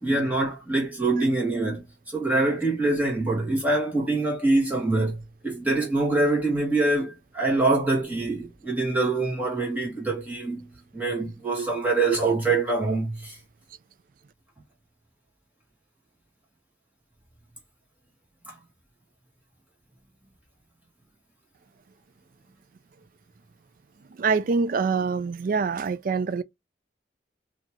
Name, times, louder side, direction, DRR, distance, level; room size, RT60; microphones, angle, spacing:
voice 1, 0.0-1.8 2.1-10.6 10.9-13.4 18.5-18.6, right 2 dB, 10° right, 1.6 m, -24 dB
voice 2, 24.1-26.4, right 5 dB, 50° right, 0.3 m, -25 dB
5.1 x 2.8 x 2.6 m
head